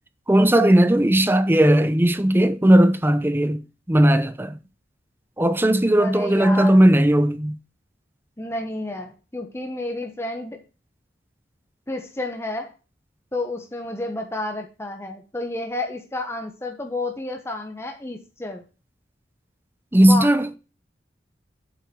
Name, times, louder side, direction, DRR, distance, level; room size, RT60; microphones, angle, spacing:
voice 1, 0.3-3.6 3.9-4.6 5.4-7.6 19.9-20.5, right 1 dB, 10° right, 0.8 m, -17 dB
voice 2, 6.0-6.8 8.4-10.6 11.9-12.7 13.3-18.6 20.0-20.3, left 2 dB, 15° left, 1.0 m, -30 dB
8.0 x 5.6 x 6.2 m
head